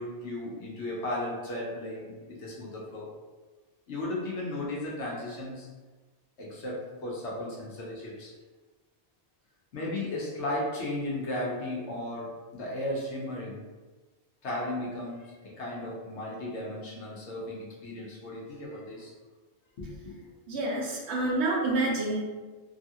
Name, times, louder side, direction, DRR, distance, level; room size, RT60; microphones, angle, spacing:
voice 1, 0.0-3.1 3.9-5.7 6.4-8.3 9.7-13.6 14.4-19.1 19.8-20.1, left 1 dB, 85° left, -5 dB, 1.1 m, -35 dB
voice 2, 20.5-22.2, right 2 dB, 75° right, -2 dB, 0.9 m, -28 dB
3.0 x 2.4 x 2.7 m, 1.3 s
omnidirectional pair, 1.1 m